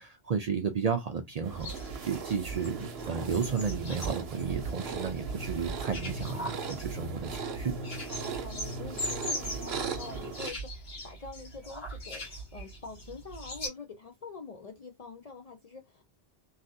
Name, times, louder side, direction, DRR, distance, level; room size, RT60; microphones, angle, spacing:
voice 1, 0.0-7.7, right 6 dB, 55° right, 0.4 m, -33 dB
sound 1, 1.4-10.5, right 4 dB, 80° right, 0.9 m, -38 dB
sound 2, 1.5-13.7, right 1 dB, 70° left, 1.7 m, -40 dB
voice 2, 7.6-16.0, left 4 dB, 50° left, 0.5 m, -46 dB
3.1 x 2.5 x 2.6 m
omnidirectional pair, 1.0 m